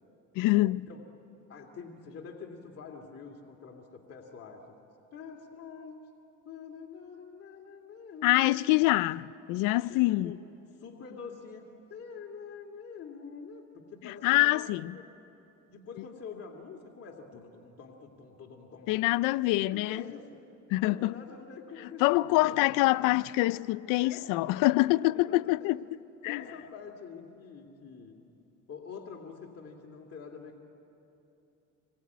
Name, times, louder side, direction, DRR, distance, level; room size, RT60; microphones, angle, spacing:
voice 1, 0.4-0.9 8.2-10.3 14.2-15.0 18.9-20.0 20.7-21.1 22.0-25.8 26.2-26.4, left 19 dB, 90° left, 0.5 m, -25 dB
voice 2, 1.5-4.6 5.1-6.0 6.4-9.5 9.9-10.5 10.8-11.6 11.9-13.6 13.9-14.6 14.9-15.1 15.7-19.1 19.3-20.3 20.8-22.6 24.0-24.3 25.1-25.8 26.2-28.2 28.7-30.6, left 5 dB, 50° left, 2.5 m, -46 dB
25.5 x 22.0 x 9.4 m
cardioid pair, 95°, 31 cm